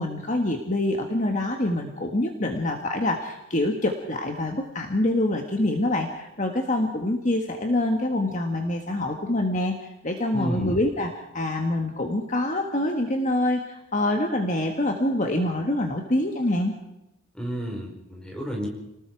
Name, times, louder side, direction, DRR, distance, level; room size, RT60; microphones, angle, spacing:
voice 1, 0.0-16.7, left 1 dB, 35° left, 3 dB, 1.6 m, -25 dB
voice 2, 10.3-10.8 17.3-18.7, equal, 5° left, -1 dB, 4.9 m, -31 dB
30.0 x 19.5 x 4.8 m, 0.90 s
head